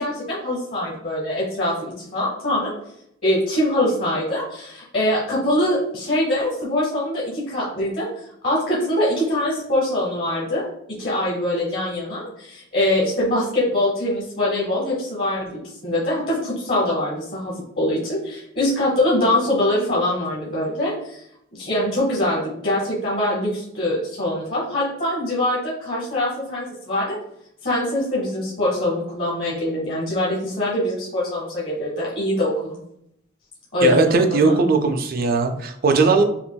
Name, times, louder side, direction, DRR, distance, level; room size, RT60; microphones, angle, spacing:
voice 1, 0.0-2.7 3.2-8.1 8.4-21.2 21.5-27.2 27.6-32.8 33.7-34.6, left 1 dB, 50° left, -5 dB, 1.0 m, -23 dB
voice 2, 33.8-36.2, right 4 dB, 45° right, 6 dB, 0.4 m, -18 dB
5.5 x 2.5 x 2.2 m, 0.75 s
head